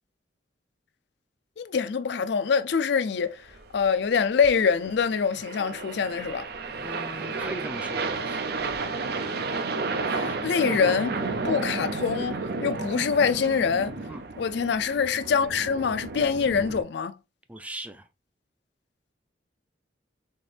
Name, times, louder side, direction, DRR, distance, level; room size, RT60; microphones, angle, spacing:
voice 1, 1.6-3.4 3.7-6.5 10.1-11.1 11.4-13.9 14.4-17.1, left 6 dB, 65° left, 0.4 m, -25 dB
sound 1, 3.5-16.8, right 3 dB, 55° right, 0.5 m, -32 dB
voice 2, 6.8-8.4 14.1-14.2 17.5-18.1, right 1 dB, 5° right, 0.4 m, -39 dB
4.3 x 3.5 x 3.3 m
head